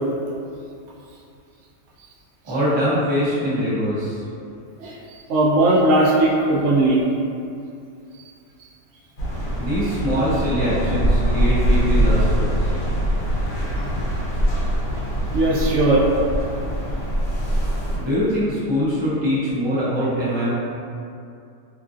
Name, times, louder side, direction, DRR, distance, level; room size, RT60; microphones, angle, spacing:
voice 1, 2.4-4.2 9.6-12.7 17.9-20.5, equal, 35° right, -10 dB, 0.4 m, -23 dB
voice 2, 5.3-7.0 15.3-16.0, right 2 dB, 75° right, -5 dB, 0.6 m, -17 dB
sound 1, 9.2-18.0, equal, 60° left, 0.9 m, -22 dB
3.0 x 2.5 x 2.4 m, 2.5 s
omnidirectional pair, 1.8 m